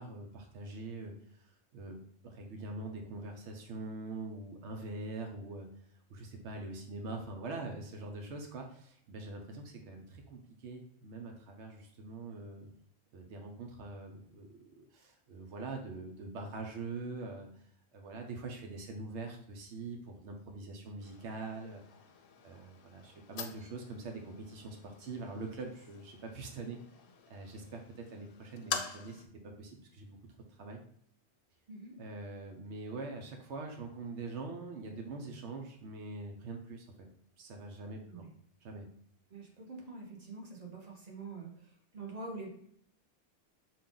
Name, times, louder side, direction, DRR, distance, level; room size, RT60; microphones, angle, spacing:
voice 1, 0.0-2.0 2.2-5.7 6.1-12.7 13.1-17.7 17.9-21.8 22.4-26.8 27.3-30.2 30.6-30.8 32.0-36.9 37.4-38.3 38.6-38.9, right 3 dB, 85° right, 3 dB, 1.0 m, -43 dB
sound 1, 21.0-29.3, left 7 dB, 75° left, 0.8 m, -46 dB
voice 2, 31.7-32.0 38.1-38.3 39.3-42.5, right 3 dB, 40° right, -1 dB, 1.1 m, -45 dB
5.5 x 2.4 x 3.7 m, 0.65 s
omnidirectional pair, 1.1 m